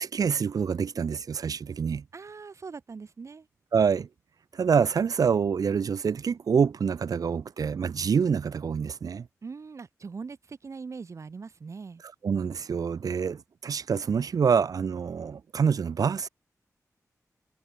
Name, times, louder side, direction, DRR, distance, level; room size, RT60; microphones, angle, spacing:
voice 1, 0.0-2.0 3.7-4.1 4.5-9.3 12.2-16.3, right 6 dB, 80° right, 1.4 m, -26 dB
voice 2, 2.1-3.5 9.4-12.0, right 5 dB, 55° right, 5.8 m, -41 dB
wide cardioid pair, 150°, 6 cm